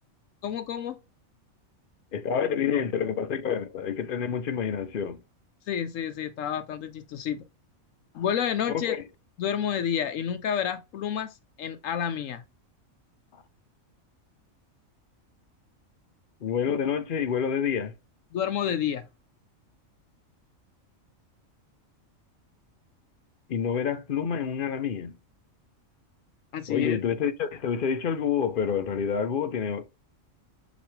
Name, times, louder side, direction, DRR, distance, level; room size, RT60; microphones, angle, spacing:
voice 1, 0.4-1.0 5.7-7.4 8.1-9.0 9.4-12.4 18.3-19.1 26.5-27.0, left 9 dB, 75° left, 1.0 m, -29 dB
voice 2, 2.1-5.2 8.1-8.2 8.7-9.0 16.4-17.9 23.5-25.1 26.7-30.0, left 7 dB, 50° left, 0.7 m, -28 dB
6.1 x 3.0 x 2.8 m
omnidirectional pair, 1.4 m